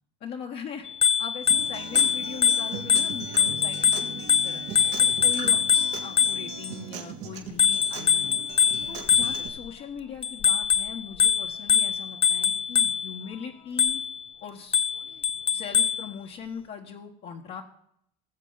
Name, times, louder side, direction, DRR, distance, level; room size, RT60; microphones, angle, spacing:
voice 1, 0.2-0.9 1.2-4.6 5.0-8.4 8.9-14.0 14.4-14.8 15.5-17.6, left 7 dB, 55° left, -1 dB, 1.5 m, -40 dB
Bicycle bell, 0.9-6.7 7.6-9.7 10.2-13.2 13.8-14.2 14.7-16.1, left 7 dB, 25° left, 0.5 m, -23 dB
Acoustic guitar, 1.5-9.5, right 8 dB, 85° right, 2.4 m, -40 dB
19.5 x 7.4 x 4.1 m, 0.72 s
supercardioid pair, 100°, 20 cm